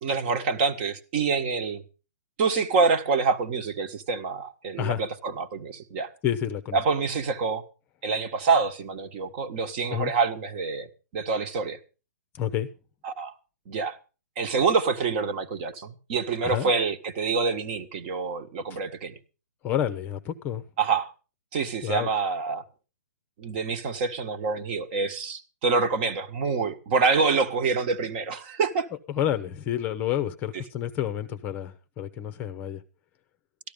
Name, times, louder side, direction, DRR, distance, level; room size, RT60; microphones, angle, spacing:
voice 1, 0.0-1.8 2.4-6.1 6.7-7.6 8.0-11.8 13.0-13.3 13.7-14.0 14.4-19.2 20.8-21.1 21.5-22.6 23.4-28.9, right 4 dB, 35° right, 1.5 m, -26 dB
voice 2, 6.2-6.8 9.9-10.1 12.3-12.7 16.4-16.7 19.6-20.6 21.8-22.1 29.1-32.8, left 10 dB, 20° left, 0.8 m, -29 dB
13.5 x 11.5 x 5.1 m
hypercardioid pair, 150°, 9 cm